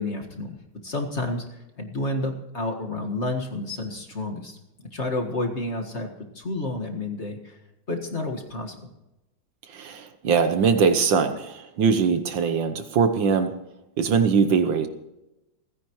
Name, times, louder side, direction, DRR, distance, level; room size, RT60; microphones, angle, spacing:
voice 1, 0.0-7.6 7.9-8.9, left 2 dB, 35° left, 2 dB, 1.8 m, -30 dB
voice 2, 9.7-13.5 14.0-14.9, right 6 dB, 65° right, 9 dB, 1.6 m, -21 dB
29.0 x 10.0 x 3.1 m, 0.96 s
omnidirectional pair, 2.3 m